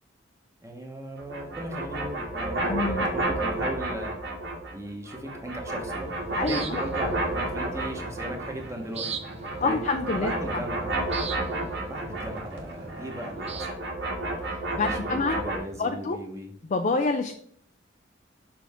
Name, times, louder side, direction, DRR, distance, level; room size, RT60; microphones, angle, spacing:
voice 1, 0.6-4.1 4.7-9.1 9.6-9.8 10.2-10.9 11.8-13.9 14.7-16.5, right 1 dB, 15° right, 3 dB, 1.1 m, -37 dB
sound 1, 1.2-4.8 5.0-8.7 9.0-15.6, right 2 dB, 65° right, 1.8 m, -31 dB
voice 2, 2.7-3.1 6.4-6.9 9.6-10.6 14.5-15.4 15.8-16.2 16.6-17.3, left 3 dB, 40° left, 6 dB, 0.4 m, -27 dB
sound 2, 6.0-13.7, right 4 dB, 35° right, 0.6 m, -41 dB
6.1 x 5.7 x 3.6 m, 0.62 s
head